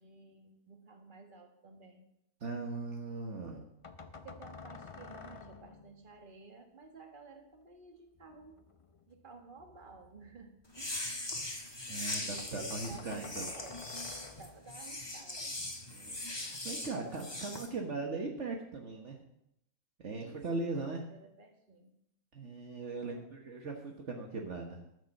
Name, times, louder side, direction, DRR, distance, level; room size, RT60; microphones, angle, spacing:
voice 1, 0.0-2.0 4.2-8.6 9.1-11.4 12.3-13.8 14.4-15.6 20.2-21.9 23.1-23.2, right 4 dB, 40° right, 3 dB, 1.8 m, -54 dB
voice 2, 2.4-3.6 11.8-13.5 15.9-19.2 20.0-21.0 22.3-24.8, right 3 dB, 60° right, 1 dB, 1.5 m, -39 dB
sound 1, 3.8-6.2 8.1-11.4 11.8-11.9 12.1-12.2 12.4-14.9, left 4 dB, 35° left, 0.6 m, -52 dB
sound 2, 10.7-17.7, left 2 dB, 20° left, 1.4 m, -40 dB
12.5 x 6.6 x 7.1 m, 0.79 s
omnidirectional pair, 1.4 m